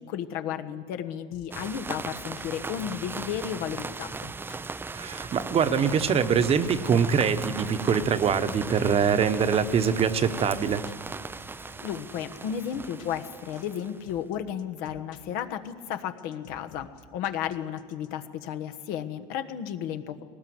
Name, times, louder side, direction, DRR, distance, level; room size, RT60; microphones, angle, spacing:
voice 1, 0.0-4.1 11.6-20.2, left 9 dB, 70° left, 8 dB, 1.4 m, -33 dB
sound 1, 1.3-18.1, left 5 dB, 85° left, 1.6 m, -50 dB
sound 2, 1.5-14.1, right 4 dB, 15° right, 0.5 m, -38 dB
voice 2, 4.9-10.9, right 7 dB, 35° right, 11 dB, 1.1 m, -24 dB
20.0 x 18.5 x 7.9 m, 2.1 s
supercardioid pair, 105°, 17 cm